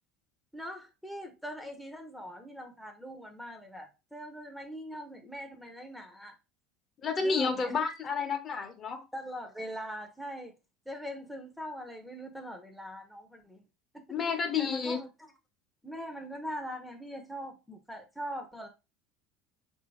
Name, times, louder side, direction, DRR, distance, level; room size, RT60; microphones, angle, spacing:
voice 1, 0.5-6.3 7.2-7.8 9.1-10.5 10.9-13.6 13.9-14.0 14.6-15.1 15.8-18.7, equal, ahead, 0.7 m, -42 dB
voice 2, 7.0-9.0 14.1-15.0, left 5 dB, 35° left, 0.9 m, -30 dB
4.0 x 2.7 x 3.0 m
hypercardioid pair, 85°, 0 cm